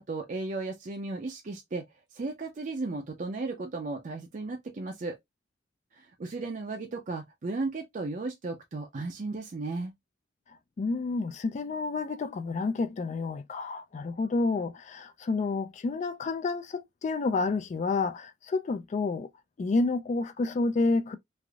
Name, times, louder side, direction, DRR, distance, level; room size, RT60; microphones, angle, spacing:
voice 1, 0.0-1.9 2.1-5.2 5.9-9.9, right 3 dB, 45° right, 0.5 m, -35 dB
voice 2, 10.8-19.3 19.6-21.2, left 3 dB, 40° left, 0.3 m, -29 dB
3.2 x 2.5 x 2.3 m
head